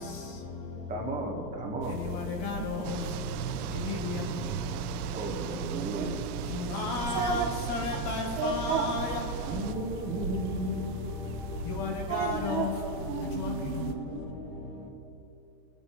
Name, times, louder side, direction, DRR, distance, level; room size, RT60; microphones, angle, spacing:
voice 1, 0.9-2.1 5.1-6.2 9.4-11.0, right 2 dB, 15° right, 1.6 m, -34 dB
sound 1, 1.8-13.9, right 4 dB, 30° right, 0.6 m, -42 dB
voice 2, 2.1-2.9 3.8-4.2 6.7-9.2 11.7-12.7 13.4-13.5, left 4 dB, 35° left, 1.5 m, -33 dB
sound 2, 2.8-9.8, right 11 dB, 70° right, 0.7 m, -37 dB
voice 3, 5.7-6.0 7.1-7.5 8.4-8.9 12.1-12.7 13.1-14.2, right 6 dB, 50° right, 1.0 m, -32 dB
24.0 x 9.8 x 3.3 m
supercardioid pair, 165°, 47 cm